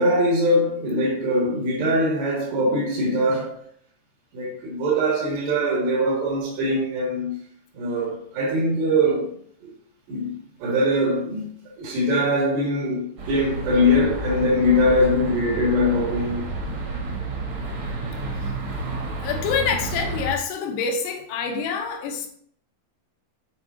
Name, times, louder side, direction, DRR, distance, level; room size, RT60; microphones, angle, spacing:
voice 1, 0.0-3.6 4.3-7.4 7.7-9.3 9.6-9.7 10.1-10.4 10.6-11.5 11.8-16.4, equal, 85° right, 4.1 m, -22 dB
sound 1, 13.2-20.4, right 2 dB, 60° right, 1.3 m, -30 dB
voice 2, 19.2-22.3, left 6 dB, 90° left, 3.1 m, -26 dB
12.5 x 4.5 x 2.8 m
omnidirectional pair, 4.7 m